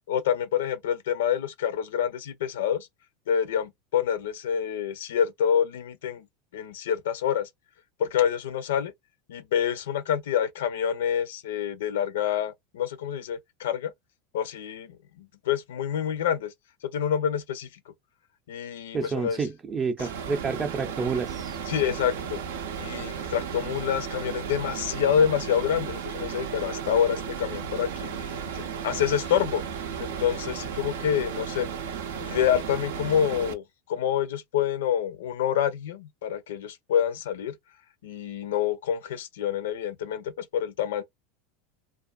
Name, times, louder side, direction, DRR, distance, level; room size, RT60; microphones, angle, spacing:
voice 1, 0.1-2.9 3.3-6.3 6.5-7.5 8.0-8.9 9.3-13.9 14.3-16.5 16.9-17.7 18.5-19.4 21.7-22.4 22.8-29.6 30.0-31.7 32.2-33.6 33.9-37.6 38.0-41.0, left 9 dB, 80° left, 0.4 m, -27 dB
voice 2, 18.9-21.6, right 4 dB, 25° right, 0.4 m, -29 dB
sound 1, 20.0-33.5, right 7 dB, 80° right, 0.5 m, -34 dB
2.4 x 2.3 x 2.3 m
hypercardioid pair, 100°, 0 cm